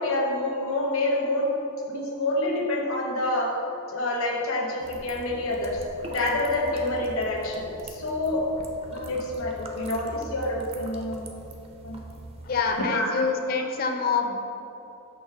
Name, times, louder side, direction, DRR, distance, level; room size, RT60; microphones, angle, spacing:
voice 1, 0.0-1.5 1.9-3.5 3.9-5.8 6.1-8.4 8.9-11.3 11.8-12.0 12.8-13.2, left 1 dB, 75° left, -2 dB, 0.9 m, -27 dB
sound 1, 4.8-12.8, right 2 dB, 25° right, 0.5 m, -42 dB
voice 2, 12.5-14.4, left 4 dB, 45° left, 4 dB, 0.4 m, -26 dB
6.4 x 3.0 x 5.7 m, 3.0 s
head